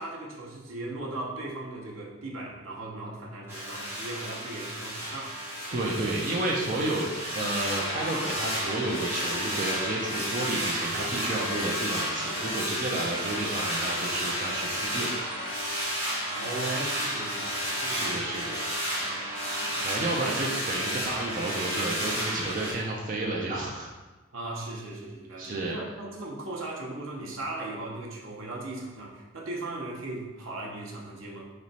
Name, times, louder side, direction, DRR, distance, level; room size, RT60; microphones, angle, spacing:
voice 1, 0.0-5.3 5.8-6.0 15.9-18.3 19.0-19.2 24.3-31.5, right 2 dB, 80° right, -2 dB, 0.8 m, -38 dB
sound 1, 3.5-22.7, equal, 10° right, 0.9 m, -32 dB
voice 2, 5.7-15.1 17.9-18.6 19.1-19.5 19.7-23.9 25.4-25.8, right 2 dB, 40° right, -3 dB, 0.4 m, -31 dB
sound 2, 7.7-18.4, left 2 dB, 85° left, 0.7 m, -42 dB
3.1 x 3.1 x 4.0 m, 1.2 s
head